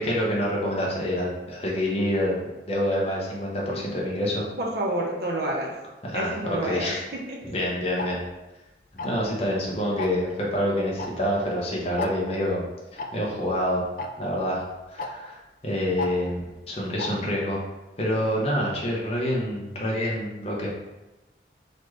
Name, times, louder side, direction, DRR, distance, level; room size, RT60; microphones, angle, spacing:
voice 1, 0.0-2.4 2.7-4.4 6.0-7.1 7.4-8.2 9.0-12.7 12.9-13.8 14.2-15.4 15.6-17.6 18.0-20.7, equal, 35° left, -3 dB, 0.9 m, -27 dB
voice 2, 4.6-5.7 6.1-7.4, right 1 dB, 60° right, -2 dB, 0.7 m, -29 dB
Tick-tock, 8.0-8.1 9.0-9.3 10.0-10.2 11.0-11.1 11.4-11.5 12.0-12.1 13.0-13.1 14.0-14.1 15.0-15.1 16.0-16.1 17.0-17.1, left 4 dB, 50° left, 0.3 m, -31 dB
4.2 x 3.0 x 3.2 m, 1.1 s
head